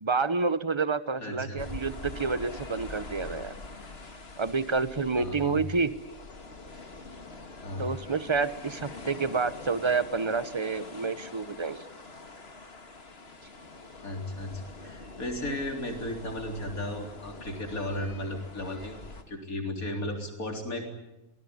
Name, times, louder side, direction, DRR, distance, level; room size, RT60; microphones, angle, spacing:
voice 1, 0.0-3.5 4.4-5.9 7.8-11.8, right 4 dB, 25° right, 14 dB, 0.9 m, -29 dB
voice 2, 1.2-1.6 5.1-5.6 7.6-7.9 14.0-20.9, left 1 dB, 80° left, 3 dB, 4.3 m, -35 dB
sound 1, 1.6-19.2, left 3 dB, 45° left, 2.3 m, -44 dB
25.0 x 19.5 x 9.7 m, 0.96 s
omnidirectional pair, 1.5 m